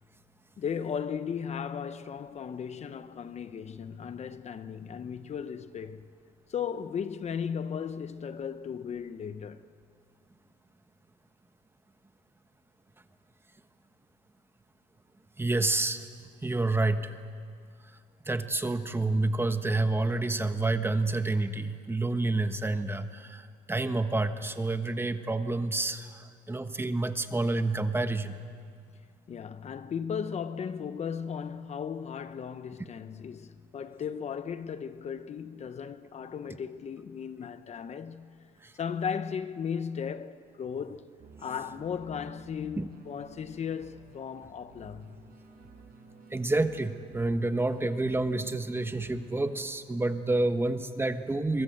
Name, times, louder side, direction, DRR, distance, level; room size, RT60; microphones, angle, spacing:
voice 1, 0.6-6.1 6.5-9.7 29.3-38.3 38.8-41.1 41.4-45.2, left 7 dB, 40° left, 0.9 m, -36 dB
voice 2, 15.4-16.1 16.4-17.2 18.3-23.4 23.7-28.4 38.6-38.7 42.8-42.9 46.3-51.6, right 2 dB, 15° right, 1.3 m, -29 dB
sound 1, 41.2-49.7, right 5 dB, 60° right, 6.4 m, -53 dB
25.5 x 23.0 x 7.9 m
cardioid pair, 110°, 17 cm